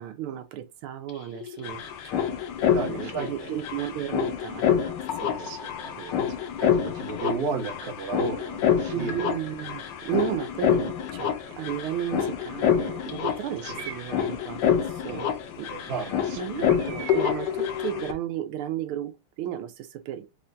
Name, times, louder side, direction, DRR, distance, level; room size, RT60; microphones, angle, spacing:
voice 1, 0.0-2.3 2.6-5.5 6.0-6.1 8.9-15.3 15.6-15.7 16.3-20.3, right 11 dB, 85° right, 1.5 m, -34 dB
sound 1, 1.1-1.2 1.3-18.1, left 8 dB, 70° left, 1.1 m, -27 dB
voice 2, 2.7-3.6 5.3-9.2 13.6-13.8 15.1-15.2 15.7-16.7, right 5 dB, 55° right, 0.6 m, -34 dB
Bird, 11.3-11.8 12.6-13.1 13.7-14.4 16.7-17.7, right 11 dB, 70° right, 1.5 m, -43 dB
4.3 x 2.2 x 2.5 m
omnidirectional pair, 2.3 m